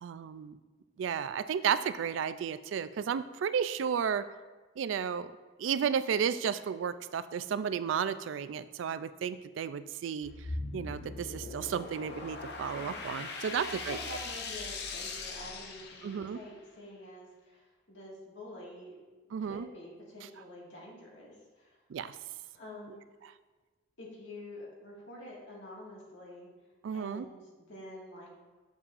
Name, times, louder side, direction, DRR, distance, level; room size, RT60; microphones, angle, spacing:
voice 1, 0.0-0.6 1.0-4.3 4.8-5.3 5.6-10.3 10.7-14.0 16.0-16.4 19.3-19.7 21.9-22.2 26.8-27.3, right 7 dB, 80° right, 14 dB, 0.3 m, -33 dB
sound 1, 10.2-16.5, left 3 dB, 55° left, 0.6 m, -40 dB
voice 2, 12.5-13.0 13.4-19.0 19.4-21.8 22.5-23.0 24.0-26.5 26.9-28.3, left 1 dB, 75° left, -4 dB, 1.9 m, -47 dB
7.1 x 6.8 x 2.5 m, 1.2 s
head